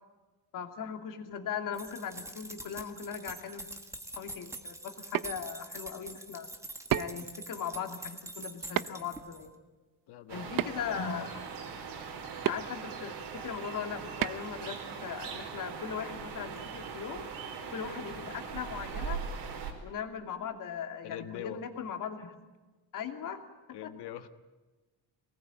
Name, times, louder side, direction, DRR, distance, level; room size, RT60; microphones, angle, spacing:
voice 1, 0.5-3.7 4.2-6.5 6.9-9.5 10.3-11.4 12.4-17.3 17.7-19.2 19.8-22.3 22.9-23.4 23.8-23.9, left 7 dB, 50° left, 5 dB, 2.6 m, -39 dB
sound 1, 1.7-9.5, right 2 dB, 5° right, 1.4 m, -45 dB
sound 2, 4.9-5.3 6.9-7.3 8.8-9.1 10.6-11.0 12.5-12.6 14.2-14.5, right 12 dB, 55° right, 0.8 m, -30 dB
voice 2, 10.1-11.1 21.0-21.6 23.7-24.3, left 11 dB, 70° left, 10 dB, 1.4 m, -43 dB
sound 3, 10.3-19.7, right 6 dB, 75° right, 4.5 m, -40 dB
23.5 x 19.5 x 9.1 m, 1.3 s
cardioid pair, 175°, 41 cm